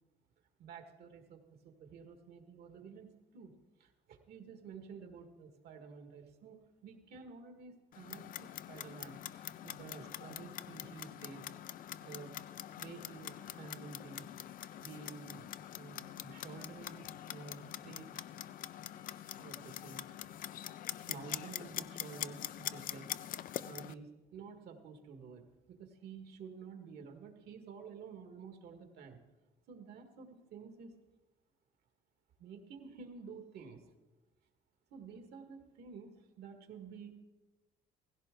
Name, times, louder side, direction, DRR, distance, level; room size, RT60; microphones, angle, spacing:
voice 1, 0.6-11.5 12.0-12.4 12.8-14.3 14.8-18.1 19.4-20.1 21.1-23.1 23.6-29.2 29.7-30.9 32.4-33.9 34.9-37.2, right 5 dB, 70° right, 6 dB, 1.8 m, -51 dB
Clock, 7.9-23.9, left 11 dB, 55° left, 0.4 m, -44 dB
16.0 x 15.5 x 3.8 m, 1.1 s
cardioid pair, 110°, 17 cm